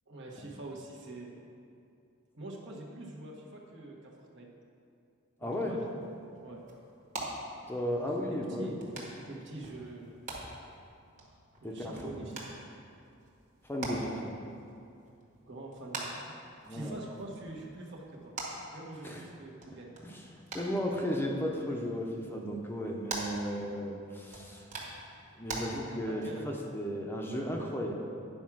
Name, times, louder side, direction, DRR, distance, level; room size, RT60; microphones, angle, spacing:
voice 1, 0.1-1.3 2.3-4.5 5.4-5.8 6.4-6.6 8.0-10.1 11.6-12.6 15.4-16.3 16.7-18.3 18.7-19.9 26.1-26.6, right 2 dB, 60° right, -1 dB, 1.3 m, -45 dB
voice 2, 5.4-5.8 7.7-8.8 11.6-12.2 13.6-14.3 16.7-17.0 19.0-19.3 20.0-24.7 25.4-27.9, equal, 10° left, 0 dB, 0.7 m, -35 dB
sound 1, 5.8-25.6, right 2 dB, 40° right, 1.6 m, -45 dB
9.6 x 4.8 x 6.1 m, 2.5 s
head